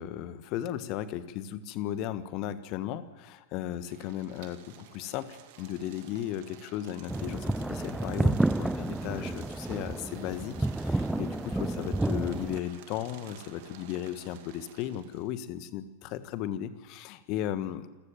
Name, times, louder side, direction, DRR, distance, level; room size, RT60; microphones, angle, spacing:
voice 1, 0.0-17.9, left 11 dB, 40° left, 13 dB, 1.5 m, -36 dB
sound 1, 3.7-15.3, right 10 dB, 50° right, 2.2 m, -51 dB
sound 2, 7.1-12.6, right 2 dB, 5° right, 0.6 m, -30 dB
28.0 x 15.0 x 7.6 m, 1.3 s
figure-of-eight pair, 90°, 0 cm